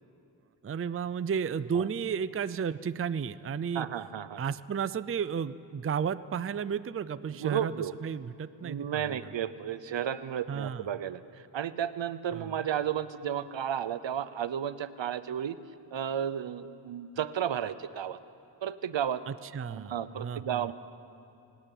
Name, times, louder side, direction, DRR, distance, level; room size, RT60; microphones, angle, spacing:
voice 1, 0.6-3.9 4.4-7.7 8.0-9.3 10.5-10.9 12.3-12.5 19.3-20.7, right 7 dB, 30° right, 15 dB, 0.4 m, -33 dB
voice 2, 3.7-4.4 7.4-7.9 8.6-11.2 11.5-15.6 15.9-18.2 18.6-19.2 19.7-20.7, right 9 dB, 70° right, 15 dB, 0.8 m, -33 dB
18.5 x 18.5 x 9.1 m, 2.8 s
wide cardioid pair, 125°, 46 cm